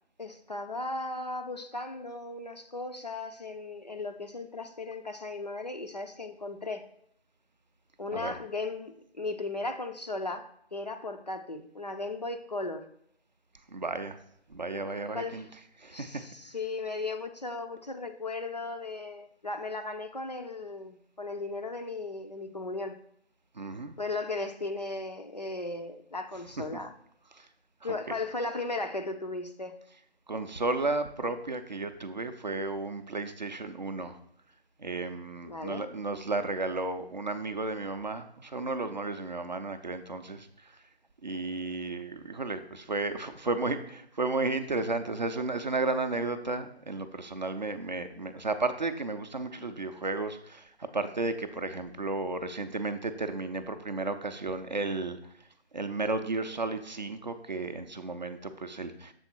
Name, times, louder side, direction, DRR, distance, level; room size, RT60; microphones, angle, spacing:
voice 1, 0.2-6.9 8.0-12.9 15.1-15.5 15.9-23.0 24.0-26.9 27.8-29.8 35.5-35.9, left 2 dB, 40° left, 6 dB, 0.4 m, -36 dB
voice 2, 13.7-14.2 14.5-15.4 15.8-16.2 23.6-23.9 27.3-27.5 30.3-34.2 34.8-40.5 41.2-55.2 55.7-59.1, right 3 dB, 45° right, 9 dB, 0.5 m, -33 dB
6.9 x 3.5 x 4.4 m, 0.71 s
figure-of-eight pair, 155°, 33 cm